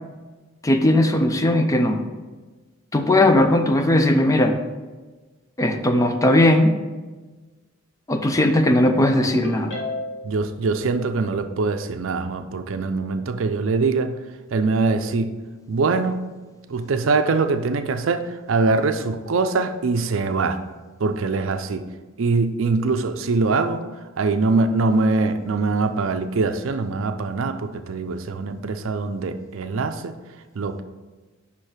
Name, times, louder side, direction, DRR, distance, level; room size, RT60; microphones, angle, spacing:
voice 1, 0.6-2.0 2.9-4.6 5.6-6.7 8.1-9.7, left 1 dB, 15° left, 6 dB, 0.4 m, -18 dB
Ringtone, 9.2-10.4, left 2 dB, 55° left, 1.5 m, -31 dB
voice 2, 10.2-14.2 14.5-15.4 15.7-16.2 16.7-20.6 21.0-21.9 22.2-30.1 30.5-30.8, right 3 dB, 65° right, 8 dB, 0.5 m, -23 dB
5.5 x 4.5 x 4.9 m, 1.3 s
head